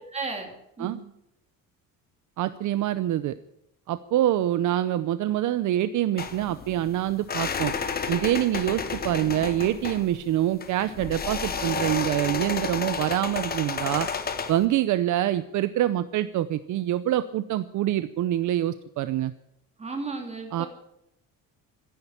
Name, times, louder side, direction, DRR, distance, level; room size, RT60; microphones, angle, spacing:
voice 1, 0.1-0.5 0.8-1.0 19.8-20.7, right 3 dB, 20° right, 3 dB, 3.2 m, -34 dB
voice 2, 2.4-3.4 3.9-7.7 8.1-14.1 14.5-19.3 20.5-20.7, right 13 dB, 55° right, 13 dB, 0.7 m, -25 dB
sound 1, 6.2-14.7, left 5 dB, 25° left, 1.4 m, -31 dB
15.5 x 10.5 x 8.6 m, 0.83 s
cardioid pair, 160°, 35 cm